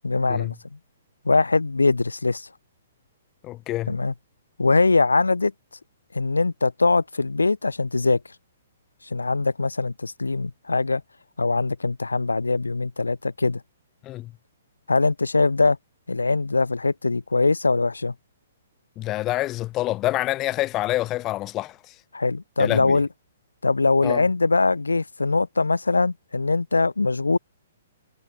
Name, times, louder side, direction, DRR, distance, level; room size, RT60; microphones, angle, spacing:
voice 1, 0.0-0.6 1.2-2.5 3.9-4.1 4.6-5.5 6.1-8.2 9.1-11.0 11.4-13.6 14.9-15.8 16.1-18.1 22.1-23.1 23.6-27.4, left 3 dB, 80° left, 0.7 m, -22 dB
voice 2, 3.4-3.9 14.0-14.3 19.0-21.8 22.6-23.0 24.0-24.2, left 16 dB, 25° left, 1.0 m, -27 dB
figure-of-eight pair, 125°, 0 cm